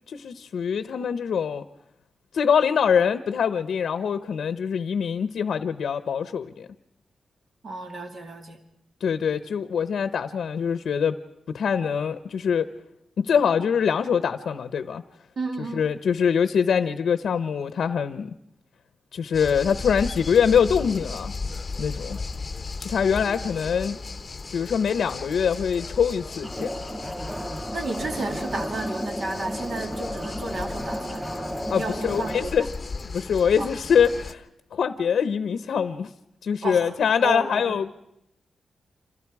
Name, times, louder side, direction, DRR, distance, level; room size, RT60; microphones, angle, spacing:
voice 1, 0.1-1.6 2.3-6.7 9.0-11.2 11.5-12.7 13.2-15.0 15.6-18.3 19.1-21.3 21.8-22.2 22.8-24.0 24.5-26.7 31.7-32.7 33.0-34.4 34.7-36.1 36.4-37.9, left 7 dB, 90° left, 11 dB, 0.8 m, -24 dB
voice 2, 7.6-8.6 15.4-15.9 27.7-31.2 31.8-32.7 33.6-33.7 36.6-36.9 37.2-37.6, right 3 dB, 50° right, 4 dB, 2.6 m, -32 dB
sound 1, 19.3-34.3, left 4 dB, 30° left, 1.0 m, -36 dB
sound 2, 26.4-32.4, equal, 5° right, 7.0 m, -33 dB
29.5 x 26.5 x 4.8 m, 0.81 s
wide cardioid pair, 165°, 0 cm